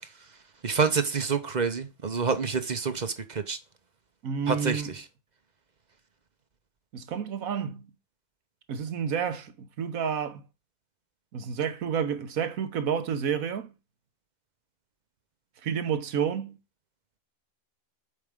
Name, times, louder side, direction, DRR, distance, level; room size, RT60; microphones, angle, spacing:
voice 1, 0.6-3.6 4.5-4.8, right 5 dB, 35° right, 0.8 m, -27 dB
voice 2, 4.2-4.9 6.9-7.9 8.7-10.4 11.3-13.7 15.6-16.6, right 7 dB, 75° right, 1.4 m, -30 dB
8.3 x 4.8 x 3.7 m
omnidirectional pair, 1.5 m